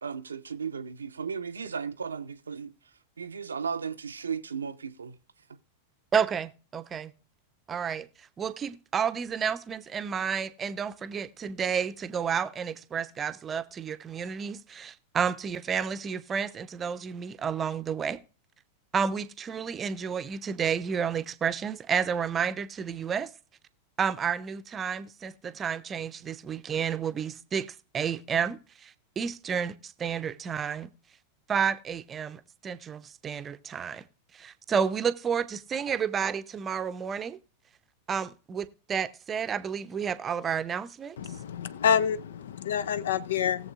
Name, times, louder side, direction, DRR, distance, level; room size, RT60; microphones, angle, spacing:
voice 1, 0.0-2.7 3.2-5.2, right 6 dB, 75° right, 0.6 m, -35 dB
voice 2, 6.1-7.1 7.7-8.1 8.4-18.2 18.9-23.3 24.0-27.7 27.9-30.9 31.5-34.0 34.3-37.4 38.1-41.2, right 7 dB, 25° right, 0.6 m, -31 dB
voice 3, 41.2-43.7, left 8 dB, 60° left, 0.5 m, -27 dB
19.5 x 7.2 x 2.4 m
figure-of-eight pair, 90°, 0 cm